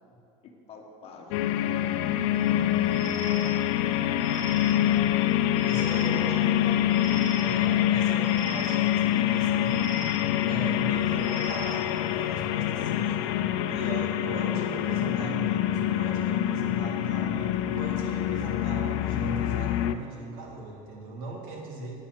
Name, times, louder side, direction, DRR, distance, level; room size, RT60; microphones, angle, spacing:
voice 1, 0.4-1.5 6.0-6.9 14.4-14.9, left 4 dB, 35° left, 2 dB, 1.3 m, -43 dB
sound 1, 1.3-19.9, left 12 dB, 80° left, 0.6 m, -26 dB
sound 2, 2.3-12.2, right 2 dB, 45° right, 2.5 m, -45 dB
voice 2, 5.6-6.7 7.4-9.8 10.5-13.4 13.7-21.9, right 2 dB, 85° right, 0 dB, 2.1 m, -39 dB
8.7 x 7.4 x 7.7 m, 2.6 s
cardioid pair, 155°, 17 cm